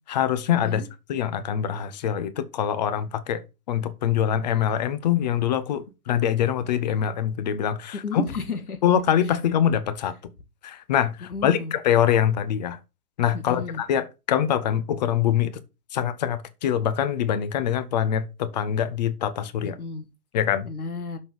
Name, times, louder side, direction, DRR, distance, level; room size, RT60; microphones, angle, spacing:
voice 1, 0.1-0.8 1.1-3.4 3.7-8.2 8.8-10.1 10.6-12.8 13.2-15.6 15.9-19.8 20.3-20.7, left 9 dB, 30° left, 0.8 m, -24 dB
voice 2, 8.0-8.8 11.3-11.7 13.3-13.8 19.8-20.1 20.6-21.2, left 4 dB, 70° left, 1.8 m, -32 dB
6.4 x 5.6 x 7.0 m
figure-of-eight pair, 125°, 45 cm